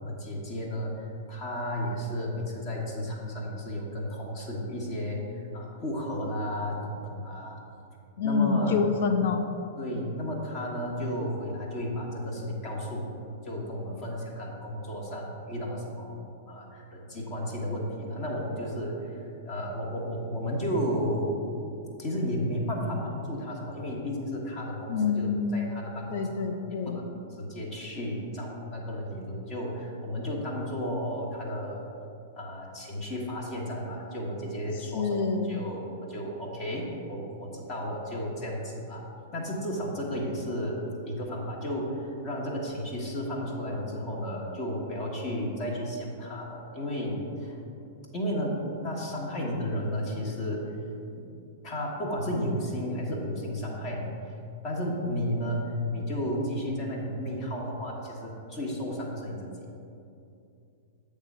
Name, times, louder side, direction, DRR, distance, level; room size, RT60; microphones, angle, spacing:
voice 1, 0.0-7.6 8.2-8.8 9.8-13.2 13.4-16.2 16.5-19.1 19.4-21.4 22.0-26.4 26.9-27.1 27.4-31.8 32.3-35.2 35.4-39.0 39.3-40.8 41.0-47.6 48.1-48.6 48.8-50.7 51.6-54.1 54.6-59.5, equal, 30° left, -3 dB, 1.3 m, -33 dB
voice 2, 8.2-9.4 24.9-25.5 26.1-27.0 34.9-35.6, left 5 dB, 50° left, 5 dB, 0.5 m, -26 dB
8.0 x 3.6 x 5.5 m, 2.6 s
figure-of-eight pair, 100°, 0 cm